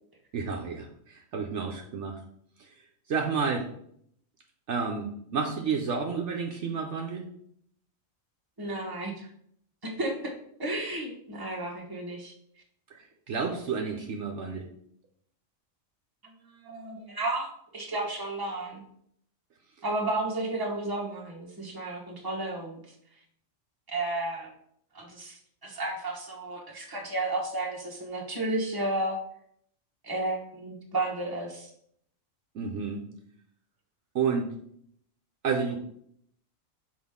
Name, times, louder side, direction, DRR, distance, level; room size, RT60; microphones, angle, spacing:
voice 1, 0.3-2.2 2.6-2.7 3.1-3.7 4.7-7.3 12.9-14.7 32.5-33.0 34.1-34.5 35.4-35.8, right 5 dB, 65° right, 2 dB, 1.0 m, -30 dB
voice 2, 8.6-9.3 9.8-10.3 10.6-12.3 16.2-18.8 19.8-22.9 23.9-24.5 24.9-29.2 30.0-31.7, right 2 dB, 20° right, -1 dB, 1.1 m, -33 dB
6.1 x 4.6 x 3.6 m, 0.68 s
omnidirectional pair, 1.4 m